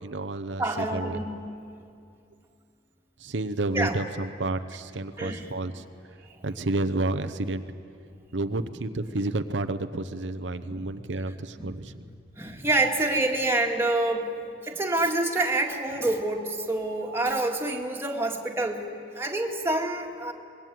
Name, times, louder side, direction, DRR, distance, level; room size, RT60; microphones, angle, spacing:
voice 1, 0.0-1.2 3.2-6.2 6.4-7.6 8.3-11.9, right 2 dB, 85° right, 9 dB, 0.9 m, -30 dB
voice 2, 0.6-1.5 3.7-4.0 5.2-5.5 10.7-10.9 11.6-11.8 12.4-14.3 14.6-18.9 19.2-20.3, right 2 dB, 15° right, 1 dB, 2.0 m, -27 dB
24.5 x 21.0 x 9.3 m, 2.5 s
head